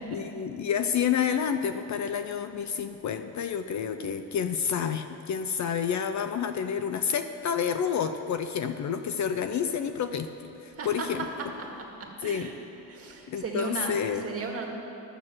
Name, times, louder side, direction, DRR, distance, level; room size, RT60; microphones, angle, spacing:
voice 1, 0.1-11.3 12.2-12.5 13.3-14.3, left 7 dB, 45° left, 9 dB, 0.5 m, -29 dB
voice 2, 10.7-11.1 11.6-11.7 12.0-12.5 12.9-13.9 14.2-14.7, right 4 dB, 35° right, 0 dB, 1.9 m, -36 dB
12.5 x 6.6 x 7.6 m, 2.9 s
cardioid pair, 110°, 40 cm